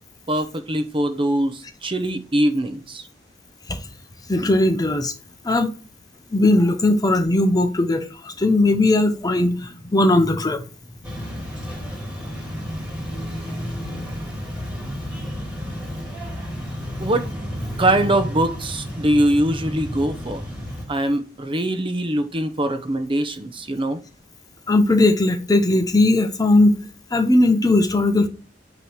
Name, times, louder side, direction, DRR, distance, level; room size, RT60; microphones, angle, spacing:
voice 1, 0.3-3.0 17.0-17.3 17.8-20.4 20.9-24.0, right 1 dB, 30° right, 0.7 m, -22 dB
voice 2, 4.3-5.1 5.4-5.7 6.3-10.6 24.7-26.8 27.1-28.3, left 2 dB, 20° left, 0.7 m, -18 dB
sound 1, 11.0-20.9, equal, 5° right, 2.7 m, -31 dB
8.9 x 3.1 x 5.6 m
head